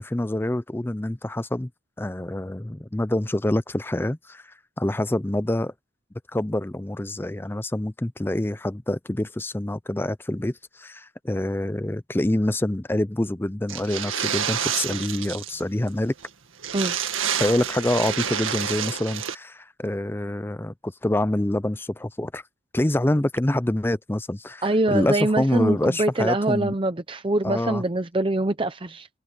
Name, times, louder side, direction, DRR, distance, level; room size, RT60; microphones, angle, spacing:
voice 1, 0.0-1.7 2.0-5.7 6.3-16.1 17.4-22.4 22.7-26.7 27.4-27.8, left 1 dB, 10° left, 0.5 m, -26 dB
sound 1, 13.7-15.6 15.9-16.0 16.2-16.3 16.6-19.3, right 8 dB, 90° right, 2.0 m, -28 dB
voice 2, 24.6-29.1, right 2 dB, 25° right, 0.7 m, -24 dB
head